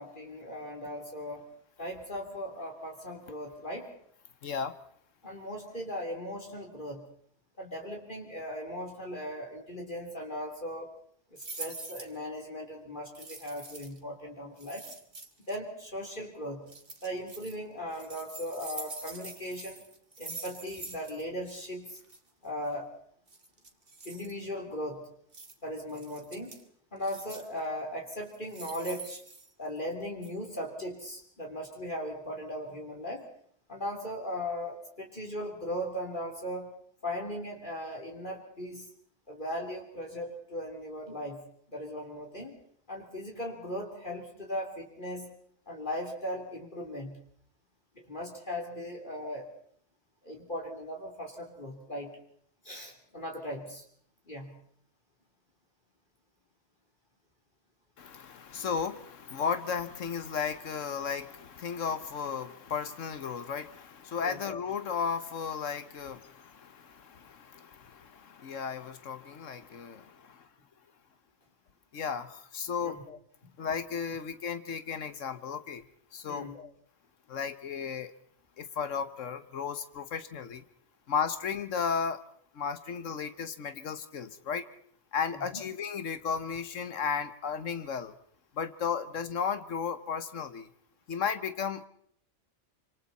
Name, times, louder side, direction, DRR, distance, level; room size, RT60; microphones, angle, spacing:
voice 1, 0.0-1.5 1.8-3.9 5.2-7.0 7.6-10.9 11.3-14.9 15.5-16.6 17.0-19.8 20.2-22.0 22.4-22.9 24.1-25.1 25.6-26.6 26.9-29.2 29.6-33.3 33.7-36.7 37.0-38.9 39.3-41.4 41.7-42.6 42.9-45.4 45.7-47.2 48.0-49.5 50.2-52.2 52.6-53.8 54.3-54.5 64.2-64.4 72.8-73.0 73.4-73.5 76.3-76.6 85.5-85.6, equal, 40° left, 0 dB, 3.5 m, -38 dB
voice 2, 4.4-4.7 58.0-70.5 71.9-73.2 73.6-75.8 76.1-76.7 77.3-78.1 78.6-80.6 81.1-82.2 82.5-84.7 85.1-88.1 88.6-90.7 91.1-91.9, left 6 dB, 85° left, 11 dB, 1.5 m, -34 dB
sound 1, 11.4-12.2 13.1-14.0 14.6-15.6 16.7-17.6 17.9-21.2 21.5-21.6 21.9-22.2 23.3-24.3 25.3-25.5 25.9-26.6 27.0-27.6 28.3-29.9 30.2-30.3, right 3 dB, 45° right, 2.4 m, -45 dB
26.5 x 26.0 x 4.2 m, 0.63 s
omnidirectional pair, 1.3 m